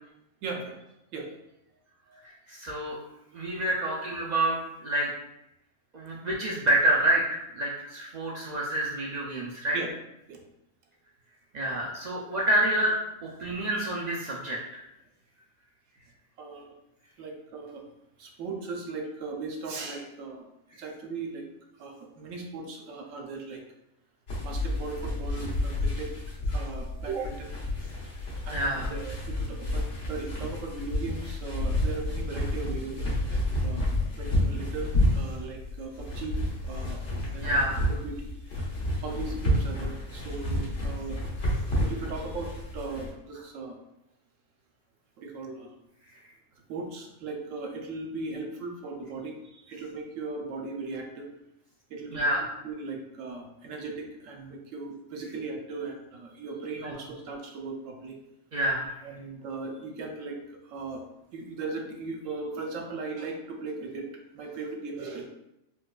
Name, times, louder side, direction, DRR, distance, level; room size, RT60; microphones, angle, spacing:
voice 1, 0.4-0.8 1.1-1.3 2.1-2.2 9.7-9.9 10.3-10.4 16.4-16.7 17.2-17.9 18.2-20.5 20.7-21.5 21.8-23.6 24.4-26.1 26.5-27.5 28.4-33.9 34.2-36.3 36.6-37.0 37.3-37.7 38.0-38.3 38.6-38.7 39.0-41.2 41.8-43.8 45.2-45.8 46.7-51.3 51.9-52.3 52.6-58.2 59.0-61.0 61.3-64.1 64.3-65.3, right 3 dB, 90° right, 1 dB, 1.0 m, -38 dB
voice 2, 2.2-3.0 3.3-5.1 5.9-9.8 11.5-14.8 28.5-28.9 37.4-37.8 52.1-52.5 56.8-56.9 58.5-58.9, right 1 dB, 70° right, -4 dB, 0.4 m, -28 dB
sound 1, 24.3-43.1, left 1 dB, 80° left, 1.4 m, -30 dB
4.3 x 2.2 x 2.3 m, 0.86 s
omnidirectional pair, 1.3 m